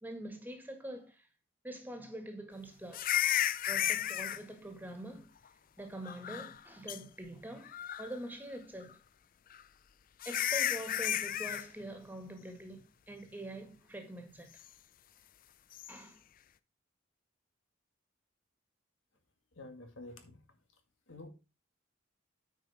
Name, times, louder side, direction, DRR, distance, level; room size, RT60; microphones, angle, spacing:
voice 1, 0.0-1.3 1.6-3.1 3.7-5.3 5.8-7.7 8.0-9.0 10.3-14.5 15.9-16.2, right 1 dB, 10° right, 1.8 m, -45 dB
sound 1, 2.9-4.4 6.0-6.6 6.9-7.0 7.6-8.2 9.5-9.6 10.2-11.7 15.7-15.9, left 11 dB, 45° left, 0.4 m, -33 dB
voice 2, 19.5-20.4 21.1-21.3, left 2 dB, 80° left, 2.1 m, -48 dB
9.3 x 5.3 x 4.9 m
head